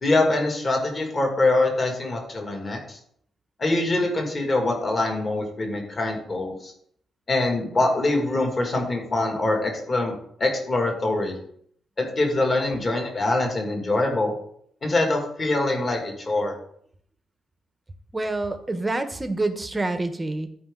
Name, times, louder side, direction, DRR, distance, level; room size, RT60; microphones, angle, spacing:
voice 1, 0.0-3.0 3.6-6.7 7.3-11.4 12.0-14.3 14.8-16.5, left 2 dB, 30° left, 2 dB, 2.2 m, -24 dB
voice 2, 18.1-20.5, right 2 dB, 15° right, 9 dB, 0.9 m, -27 dB
13.5 x 5.0 x 3.8 m, 0.65 s
cardioid pair, 135°, 0 cm